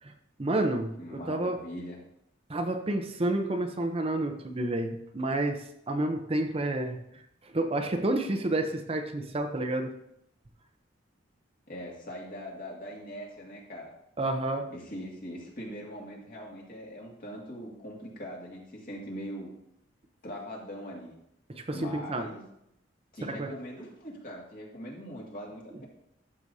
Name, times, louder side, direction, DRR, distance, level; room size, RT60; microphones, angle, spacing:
voice 1, 0.4-1.6 2.5-7.0 7.5-9.9 14.2-14.7 21.5-22.3 23.2-23.5, right 2 dB, 30° right, 5 dB, 0.7 m, -30 dB
voice 2, 1.0-2.0 11.7-13.9 14.7-19.5 20.2-21.2 21.7-22.4 23.1-25.9, equal, 50° left, -2 dB, 2.2 m, -41 dB
12.0 x 6.7 x 2.7 m, 0.78 s
head